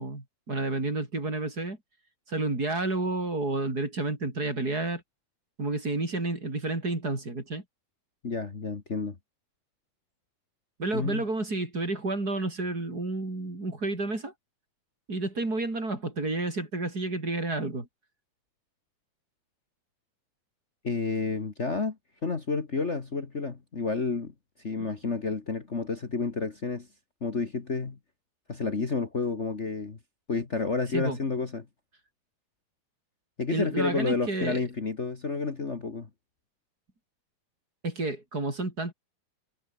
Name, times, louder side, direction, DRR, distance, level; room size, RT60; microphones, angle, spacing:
voice 1, 0.0-1.8 2.3-5.0 5.6-7.6 10.8-14.3 15.1-17.9 24.8-24.9 30.9-31.2 33.5-34.6 37.8-38.9, right 2 dB, 25° right, 5.5 m, -30 dB
voice 2, 8.2-9.2 10.9-11.2 20.8-22.0 22.2-24.3 24.6-26.9 27.2-28.0 28.5-30.0 30.3-31.6 33.4-36.1, left 4 dB, 90° left, 0.6 m, -30 dB
omnidirectional pair, 4.5 m